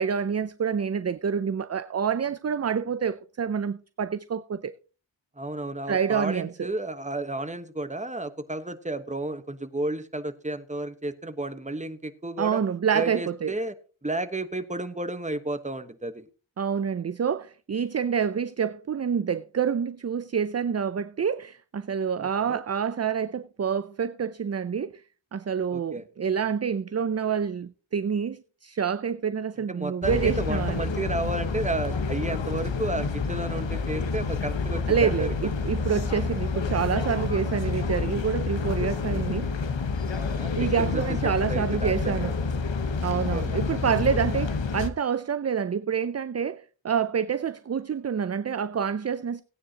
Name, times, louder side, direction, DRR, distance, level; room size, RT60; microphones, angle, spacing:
voice 1, 0.0-4.7 5.9-6.7 12.4-13.5 16.6-25.0 25.3-30.9 34.9-39.6 40.6-42.3 43.0-49.4, right 7 dB, 35° right, 0.4 m, -27 dB
voice 2, 5.4-12.6 12.9-13.7 14.0-16.3 22.2-22.6 25.7-26.0 29.7-35.3 40.1-42.3 43.1-43.4, right 2 dB, 15° right, 1.1 m, -32 dB
sound 1, 30.0-44.9, left 4 dB, 70° left, 1.1 m, -28 dB
16.5 x 9.5 x 2.8 m
wide cardioid pair, 75°, 46 cm